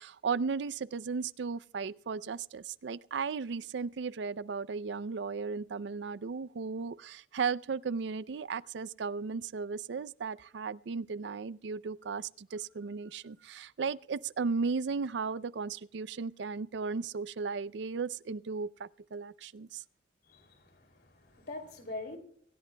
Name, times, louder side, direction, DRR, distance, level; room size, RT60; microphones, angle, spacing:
voice 1, 0.0-19.8, right 5 dB, 70° right, 0.4 m, -35 dB
voice 2, 20.3-22.2, left 2 dB, 60° left, 2.8 m, -43 dB
25.0 x 16.0 x 2.2 m
head